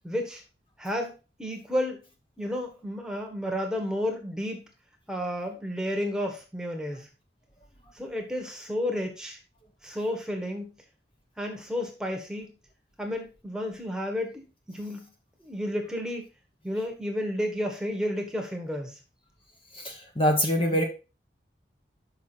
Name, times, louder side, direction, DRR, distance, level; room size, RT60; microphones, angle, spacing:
voice 1, 0.0-0.4 0.8-2.0 2.4-4.6 5.1-7.1 7.9-9.4 9.8-10.7 11.4-12.5 13.0-15.1 15.4-16.3 16.6-19.0 20.7-20.8, left 1 dB, 5° right, 2 dB, 1.3 m, -32 dB
voice 2, 19.7-20.8, equal, 30° left, 2 dB, 1.0 m, -24 dB
6.0 x 5.8 x 4.5 m, 0.31 s
head